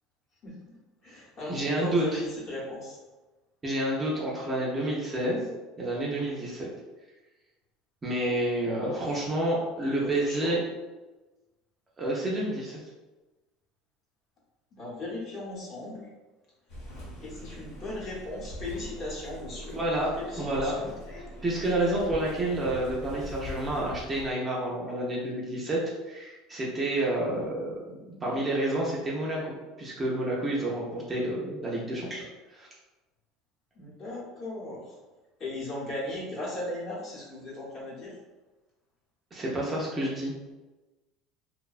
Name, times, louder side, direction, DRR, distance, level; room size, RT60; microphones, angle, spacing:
voice 1, 0.4-0.8 1.0-3.0 8.8-9.1 9.8-10.6 14.7-16.1 17.2-19.8 20.2-20.9 33.8-34.9 35.4-38.2, left 2 dB, 35° left, -6 dB, 0.9 m, -37 dB
voice 2, 1.5-2.2 3.6-5.4 5.8-6.7 8.0-10.6 12.0-12.8 19.7-20.1 20.4-25.8 26.1-32.7 39.3-40.5, right 1 dB, 15° right, -4 dB, 0.4 m, -29 dB
sound 1, 16.7-24.3, equal, 75° left, 0.9 m, -42 dB
2.6 x 2.1 x 2.3 m, 1.2 s
cardioid pair, 155°, 0 cm